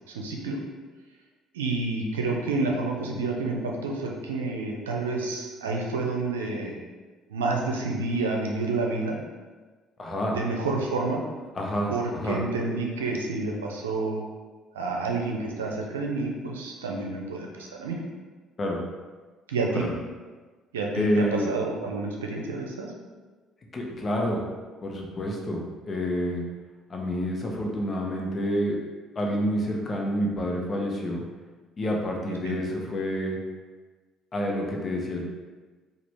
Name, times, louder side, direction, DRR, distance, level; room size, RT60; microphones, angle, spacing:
voice 1, 0.1-0.6 1.5-6.8 7.3-9.2 10.3-11.2 11.9-14.2 14.7-18.0 19.5-19.8 20.7-22.9 32.4-32.6, right 3 dB, 90° right, 0 dB, 0.5 m, -29 dB
voice 2, 10.0-10.4 11.5-12.4 18.6-18.8 19.8-19.9 20.9-21.5 23.7-24.4 24.8-26.4 26.9-28.8 29.1-31.2 31.8-33.4 34.3-35.3, equal, 40° left, 0 dB, 0.9 m, -28 dB
4.9 x 2.5 x 3.4 m, 1.3 s
hypercardioid pair, 55°, 0 cm